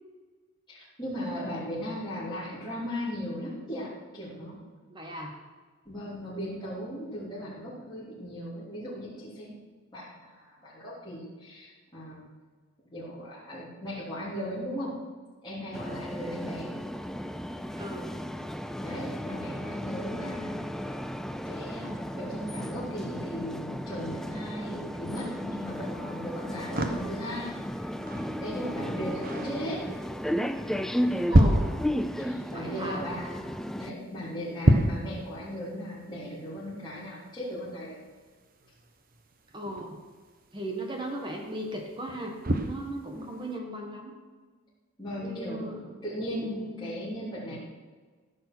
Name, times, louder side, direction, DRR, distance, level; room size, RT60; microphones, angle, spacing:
voice 1, 0.7-4.6 5.8-9.6 9.9-12.3 12.9-15.0 15.4-16.8 18.8-20.6 21.4-27.5 28.4-29.9 32.2-33.4 33.7-38.0 45.0-47.6, equal, 20° left, -10 dB, 3.4 m, -37 dB
voice 2, 4.9-5.4 17.8-18.2 31.3-31.7 32.5-33.0 39.5-40.0 40.5-42.4 42.6-44.1 45.2-46.0 46.4-46.6 47.5-47.6, right 1 dB, 20° right, 1 dB, 1.6 m, -37 dB
sound 1, 15.7-33.9, equal, ahead, 0.3 m, -34 dB
sound 2, 25.6-43.6, right 1 dB, 40° right, 1.0 m, -32 dB
14.5 x 6.7 x 6.3 m, 1.5 s
head